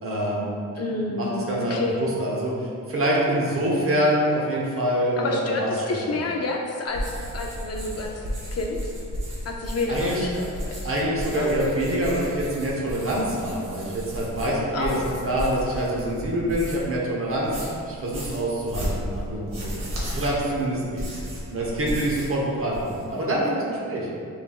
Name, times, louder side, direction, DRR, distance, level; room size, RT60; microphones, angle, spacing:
voice 1, 0.0-6.2 9.9-10.3 10.8-21.1 21.5-24.1, right 1 dB, 40° right, -4 dB, 0.8 m, -26 dB
voice 2, 0.8-2.1 5.2-8.9 9.4-10.8 11.3-11.5 14.7-15.1, left 3 dB, 50° left, 1 dB, 0.4 m, -29 dB
sound 1, 6.9-16.9 17.3-22.4 22.6-23.2, equal, 65° right, 1.2 m, -34 dB
5.8 x 3.3 x 2.3 m, 2.4 s
wide cardioid pair, 165°, 33 cm